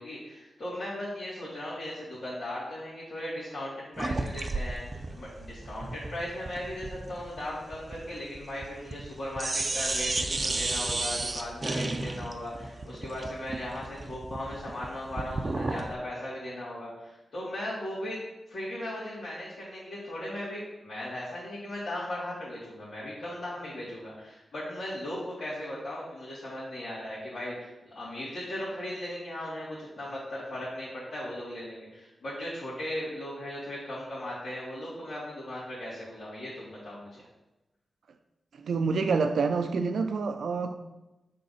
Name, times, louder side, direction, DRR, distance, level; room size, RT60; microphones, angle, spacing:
voice 1, 0.0-18.2 18.5-37.3, left 1 dB, 65° left, -11 dB, 2.6 m, -37 dB
sound 1, 4.0-9.1 9.4-15.9, right 2 dB, 40° right, 0.7 m, -33 dB
voice 2, 38.6-40.8, right 4 dB, 85° right, 7 dB, 0.6 m, -27 dB
6.7 x 3.8 x 5.7 m, 1.0 s
cardioid pair, 65°, 0 cm